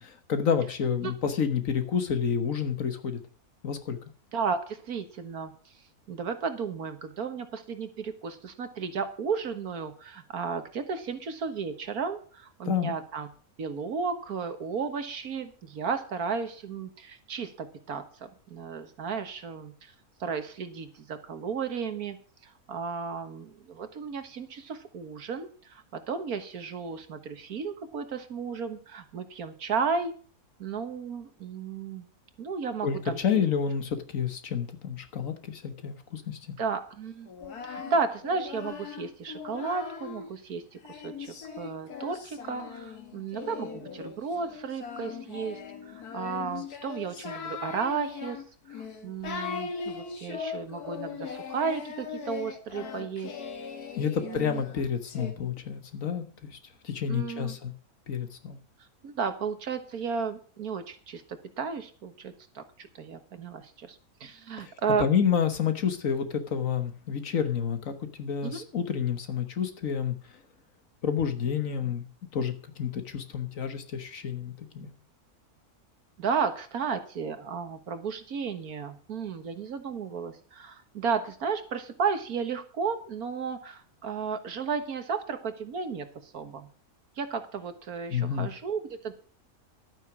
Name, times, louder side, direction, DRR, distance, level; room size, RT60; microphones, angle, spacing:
voice 1, 0.0-3.2 3.6-4.0 12.6-12.9 32.8-36.4 53.9-56.6 56.8-57.7 58.1-58.6 64.6-64.7 65.0-70.1 71.0-72.1 72.3-72.5 72.8-74.9 88.1-88.5, left 7 dB, 60° left, 8 dB, 1.6 m, -29 dB
voice 2, 4.3-5.5 6.1-13.3 13.6-19.9 20.2-22.2 22.4-30.1 30.6-32.1 32.4-33.4 36.6-37.3 37.6-45.6 45.9-48.4 48.7-53.3 54.2-54.6 57.1-57.5 59.0-65.1 68.4-68.7 76.2-86.7 87.2-89.1, right 5 dB, 75° right, 8 dB, 1.8 m, -33 dB
Singing, 37.3-40.3 40.8-55.3, left 6 dB, 80° left, 2.1 m, -39 dB
12.0 x 9.1 x 6.1 m, 0.43 s
omnidirectional pair, 1.6 m